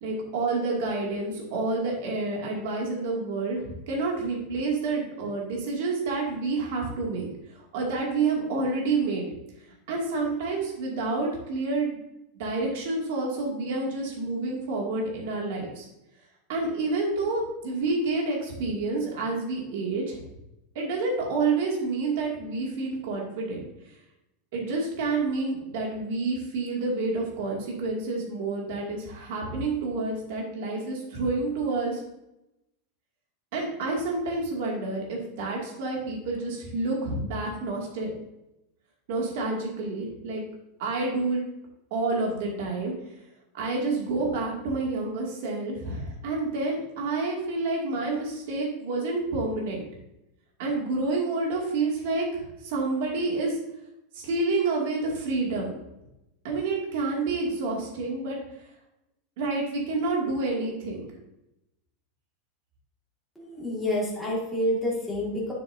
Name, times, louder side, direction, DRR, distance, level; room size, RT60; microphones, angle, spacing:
voice 1, 0.0-9.2 9.9-12.0 12.4-15.9 16.5-20.2 20.7-23.6 24.5-32.0 33.5-38.1 39.1-40.4 40.8-41.4 41.9-42.9 43.5-49.8 50.6-53.6 54.1-55.7 56.4-58.4 59.4-61.1, right 3 dB, 60° right, -1 dB, 2.3 m, -29 dB
voice 2, 63.4-65.5, left 1 dB, 5° left, -6 dB, 2.0 m, -28 dB
9.1 x 7.1 x 2.7 m, 0.90 s
supercardioid pair, 175°, 0 cm